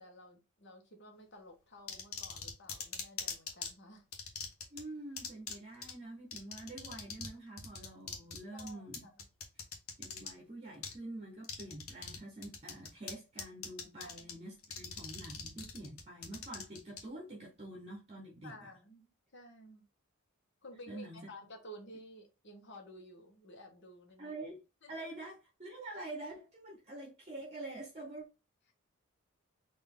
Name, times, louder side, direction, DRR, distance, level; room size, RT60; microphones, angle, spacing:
voice 1, 0.0-4.1 8.5-9.2 14.0-14.4 18.4-19.8 20.6-24.3 24.8-24.9, left 1 dB, 55° left, 1.2 m, -53 dB
sound 1, 1.9-3.7 4.1-4.8 5.2-5.5 5.8-5.9 6.3-7.3 7.6-10.3 10.8-10.9 11.4-12.2 12.4-13.1 13.4-14.3 14.6-17.0, left 5 dB, 80° left, 1.1 m, -41 dB
voice 2, 4.7-9.1 10.0-18.7 20.9-21.3 24.2-24.6 24.9-28.3, right 2 dB, 30° right, 0.8 m, -46 dB
4.0 x 2.6 x 3.6 m
head